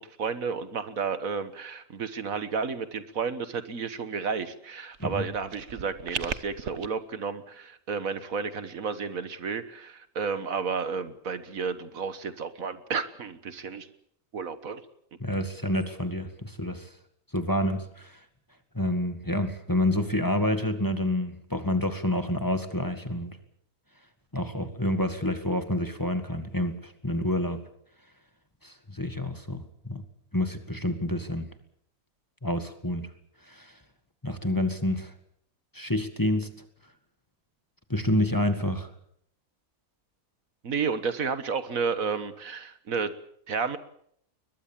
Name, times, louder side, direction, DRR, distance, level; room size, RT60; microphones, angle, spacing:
voice 1, 0.0-13.9 14.3-14.8 40.6-43.2 43.5-43.8, right 5 dB, 70° right, 12 dB, 1.7 m, -32 dB
sound 1, 4.9-6.9, right 7 dB, 55° right, 1.3 m, -37 dB
voice 2, 15.2-16.9 17.3-18.2 18.7-23.4 24.3-27.6 28.6-30.0 30.3-31.5 32.4-33.1 33.4-33.8 34.2-35.1 35.7-36.5 37.9-38.9, left 1 dB, 15° left, 8 dB, 1.8 m, -28 dB
22.0 x 21.0 x 7.4 m, 0.68 s
omnidirectional pair, 1.5 m